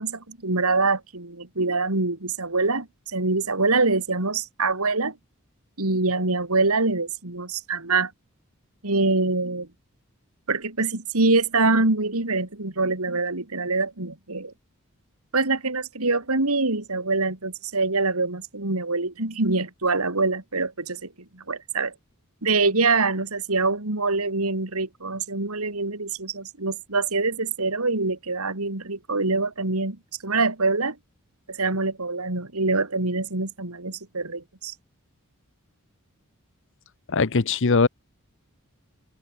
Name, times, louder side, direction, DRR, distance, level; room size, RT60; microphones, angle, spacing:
voice 1, 0.0-5.1 5.8-8.1 8.8-9.7 10.5-14.5 15.3-21.9 22.4-30.0 30.2-31.0 31.5-34.7, right 3 dB, 80° right, 3.2 m, -25 dB
voice 2, 37.1-37.9, left 4 dB, 60° left, 0.8 m, -20 dB
open air
head